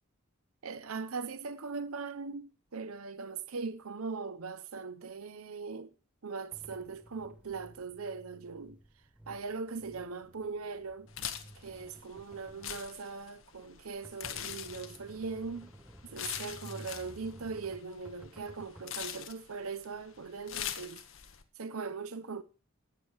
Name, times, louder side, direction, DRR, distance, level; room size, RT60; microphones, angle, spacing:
voice 1, 0.6-5.9 6.2-8.8 9.3-11.1 11.6-15.7 16.0-21.0 21.6-22.4, right 4 dB, 85° right, 0.8 m, -40 dB
sound 1, 6.5-18.9, right 1 dB, 5° right, 0.8 m, -54 dB
sound 2, 11.1-21.4, left 10 dB, 65° left, 1.2 m, -43 dB
13.0 x 9.2 x 4.6 m
head